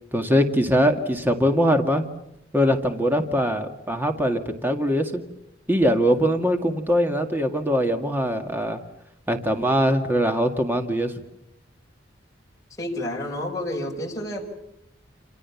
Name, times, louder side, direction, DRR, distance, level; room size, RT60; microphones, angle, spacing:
voice 1, 0.1-2.1 2.5-5.2 5.7-8.8 9.3-11.1, equal, 10° right, 5 dB, 1.9 m, -22 dB
voice 2, 12.8-14.5, left 1 dB, 20° left, -1 dB, 5.3 m, -30 dB
29.5 x 27.5 x 7.2 m, 0.83 s
head